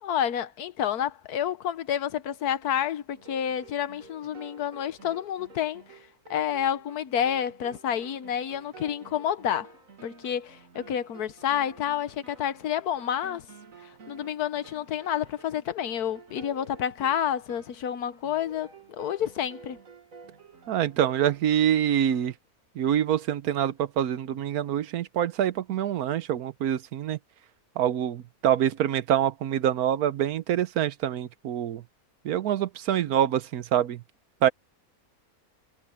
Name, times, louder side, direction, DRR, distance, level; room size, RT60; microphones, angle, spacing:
voice 1, 0.0-5.8 6.3-9.7 10.0-13.4 14.1-19.8, left 9 dB, 85° left, 1.5 m, -29 dB
sound 1, 3.1-22.3, right 4 dB, 60° right, 2.4 m, -51 dB
voice 2, 20.7-22.3 22.8-27.2 27.8-31.8 32.2-34.0 34.4-34.5, right 10 dB, 80° right, 1.3 m, -25 dB
omnidirectional pair, 1.6 m